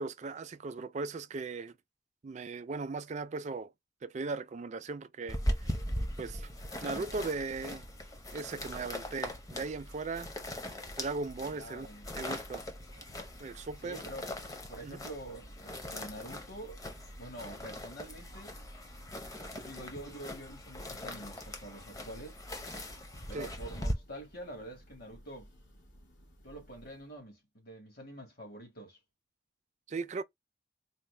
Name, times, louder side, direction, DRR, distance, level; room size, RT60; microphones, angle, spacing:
voice 1, 0.0-1.7 2.2-3.7 4.0-5.7 6.2-6.5 6.8-7.9 8.3-10.3 11.0-11.9 12.2-12.6 13.0-13.1 13.4-14.0 14.8-15.0 23.3-23.5 29.9-30.2, right 3 dB, 40° right, 0.4 m, -38 dB
sound 1, 5.3-23.9, left 1 dB, 20° left, 0.7 m, -40 dB
voice 2, 11.5-12.1 13.8-14.3 14.7-16.8 17.2-18.5 19.6-22.4 23.3-25.5 26.4-29.0, right 1 dB, 55° left, 1.7 m, -46 dB
Church bell, 12.4-27.3, equal, 75° left, 1.6 m, -58 dB
4.1 x 2.1 x 3.3 m
head